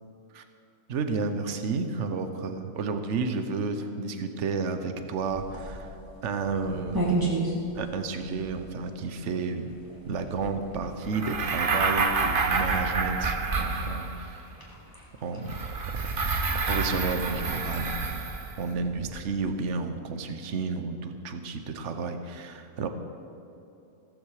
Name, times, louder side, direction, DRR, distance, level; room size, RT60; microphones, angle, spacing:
voice 1, 0.9-6.0 6.2-7.2 7.7-9.7 10.1-14.5 15.2-15.5 16.7-18.2 18.6-22.9, right 4 dB, 65° right, 7 dB, 1.3 m, -31 dB
sound 1, 5.2-19.7, right 2 dB, 15° right, 2.5 m, -37 dB
sound 2, 11.1-14.4 15.5-18.6, right 4 dB, 45° right, 1.1 m, -28 dB
15.5 x 14.0 x 4.9 m, 3.0 s
omnidirectional pair, 1.3 m